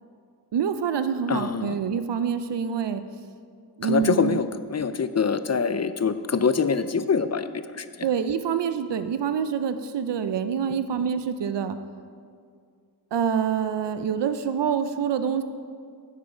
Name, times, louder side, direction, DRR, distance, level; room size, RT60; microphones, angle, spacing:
voice 1, 0.5-3.0 3.8-4.4 8.0-11.8 13.1-15.4, right 7 dB, 85° right, 10 dB, 0.5 m, -26 dB
voice 2, 1.3-1.8 3.8-8.1, left 5 dB, 40° left, 12 dB, 0.4 m, -25 dB
10.0 x 7.4 x 5.0 m, 2.2 s
wide cardioid pair, 60°, 41 cm